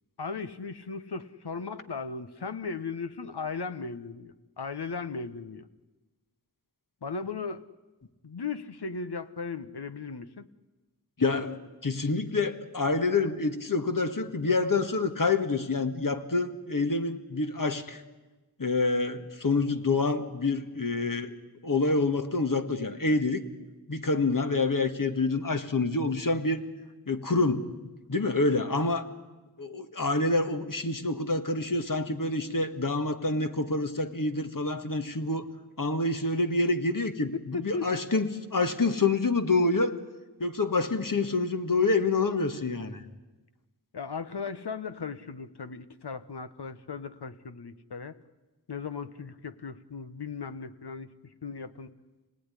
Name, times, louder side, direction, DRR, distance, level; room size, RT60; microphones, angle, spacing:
voice 1, 0.2-5.7 7.0-7.6 8.2-10.5 37.5-38.1 43.9-48.2 48.7-51.1 51.4-51.9, left 4 dB, 75° left, 11 dB, 1.2 m, -37 dB
voice 2, 11.2-18.0 18.6-21.3 21.6-23.4 23.9-26.6 27.1-27.7 28.1-29.0 29.6-35.5 35.8-39.9 40.4-43.0, left 3 dB, 55° left, 8 dB, 1.8 m, -27 dB
26.5 x 19.0 x 10.0 m, 1.2 s
wide cardioid pair, 45°, 40 cm